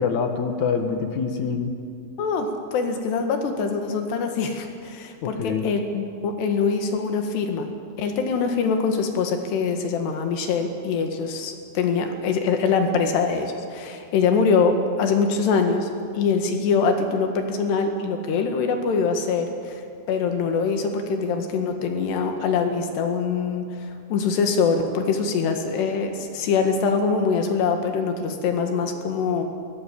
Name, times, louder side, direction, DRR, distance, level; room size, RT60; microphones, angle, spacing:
voice 1, 0.0-1.8 5.2-5.6, left 5 dB, 60° left, 6 dB, 2.3 m, -25 dB
voice 2, 2.2-19.8 20.1-29.4, left 5 dB, 80° left, 5 dB, 3.9 m, -24 dB
23.5 x 15.5 x 8.6 m, 2.3 s
omnidirectional pair, 4.8 m